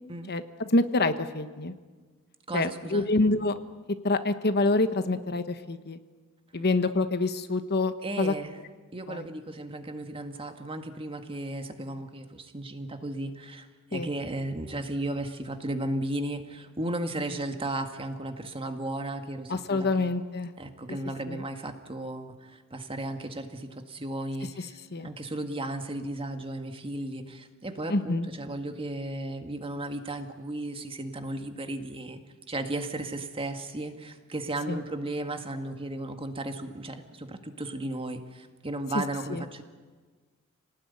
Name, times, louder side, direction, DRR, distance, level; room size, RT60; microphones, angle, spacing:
voice 1, 0.3-1.7 2.5-3.6 4.0-6.0 6.5-8.3 9.1-9.3 13.9-14.1 19.5-20.5 21.3-21.4 24.9-25.1 27.9-28.3 34.7-34.8 39.3-39.4, left 2 dB, 50° left, 10 dB, 1.2 m, -26 dB
voice 2, 2.5-3.1 8.0-8.6 8.9-13.7 13.9-20.1 20.6-24.7 25.0-32.2 32.5-39.6, right 1 dB, 25° right, 6 dB, 1.8 m, -35 dB
28.0 x 19.0 x 9.7 m, 1.4 s
head